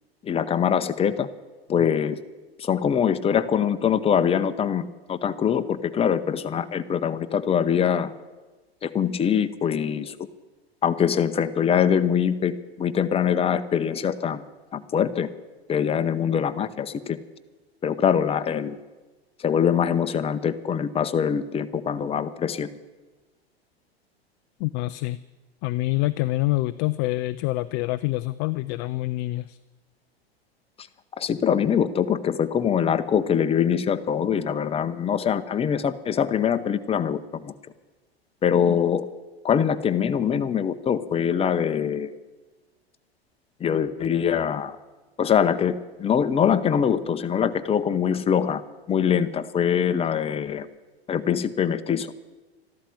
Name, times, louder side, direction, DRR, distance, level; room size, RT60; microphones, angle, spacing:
voice 1, 0.2-1.3 1.7-2.2 2.6-8.1 8.8-10.1 10.8-14.4 14.7-15.3 15.7-17.2 17.8-18.8 19.4-22.7 31.2-37.5 38.4-39.1 39.4-42.1 43.6-44.7 45.2-48.6 48.9-50.7 51.1-52.1, left 8 dB, 20° left, 10 dB, 0.8 m, -23 dB
voice 2, 24.6-25.2 25.6-29.6 38.5-38.8, left 19 dB, 35° left, 15 dB, 0.4 m, -26 dB
13.0 x 12.5 x 7.7 m, 1.2 s
hypercardioid pair, 95°, 32 cm